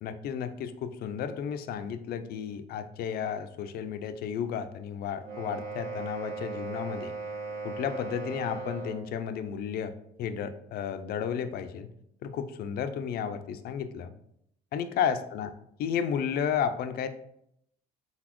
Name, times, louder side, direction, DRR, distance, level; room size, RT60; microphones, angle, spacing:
voice 1, 0.0-7.1 7.6-11.9 12.2-14.1 14.7-15.5 15.8-17.1, left 8 dB, 65° left, 10 dB, 0.5 m, -33 dB
sound 1, 5.2-9.1, right 4 dB, 65° right, 1.5 m, -38 dB
4.0 x 4.0 x 3.0 m, 0.73 s
cardioid pair, 110°, 17 cm